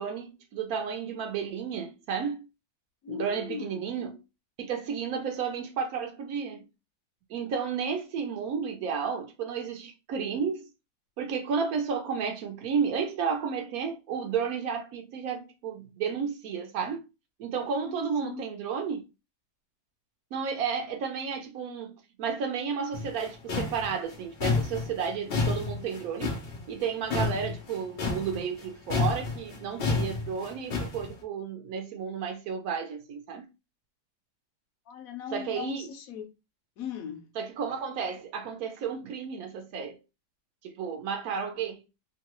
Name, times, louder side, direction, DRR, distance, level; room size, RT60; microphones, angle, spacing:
voice 1, 0.0-2.5 3.1-4.2 4.6-6.7 7.3-10.7 11.2-17.0 17.4-19.0 20.3-26.4 26.7-33.5 35.3-35.9 37.4-40.0 40.6-41.8, right 6 dB, 70° right, 0.9 m, -32 dB
voice 2, 3.0-3.9 17.8-18.0 18.2-18.4 34.9-36.3 36.8-37.2, left 7 dB, 65° left, 0.9 m, -38 dB
sound 1, 22.9-28.6 28.9-31.1, left 4 dB, 85° left, 0.5 m, -30 dB
3.0 x 2.3 x 2.9 m
omnidirectional pair, 1.9 m